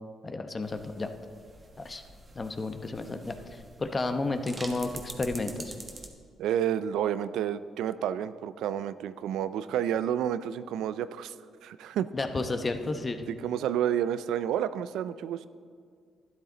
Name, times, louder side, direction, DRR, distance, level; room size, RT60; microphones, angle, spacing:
voice 1, 0.2-1.1 1.8-2.0 2.3-5.7 12.1-13.3, left 3 dB, 30° left, 7 dB, 0.9 m, -32 dB
sound 1, 0.6-6.1, right 2 dB, 25° right, 1.3 m, -46 dB
voice 2, 6.4-11.3 11.6-12.1 13.4-15.5, right 10 dB, 85° right, 14 dB, 0.4 m, -30 dB
12.0 x 10.5 x 3.9 m, 2.1 s
cardioid pair, 90°, 0 cm